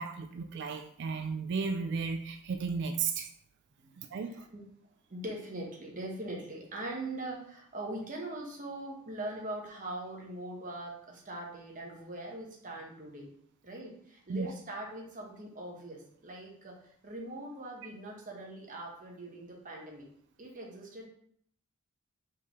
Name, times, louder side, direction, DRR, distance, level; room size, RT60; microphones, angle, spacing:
voice 1, 0.0-3.3 4.0-4.5 14.3-14.5, right 5 dB, 55° right, 6 dB, 0.3 m, -34 dB
voice 2, 4.3-4.6 5.1-13.3 13.6-20.1 20.4-21.1, right 1 dB, 40° right, -1 dB, 1.0 m, -41 dB
4.6 x 3.6 x 3.0 m, 0.65 s
head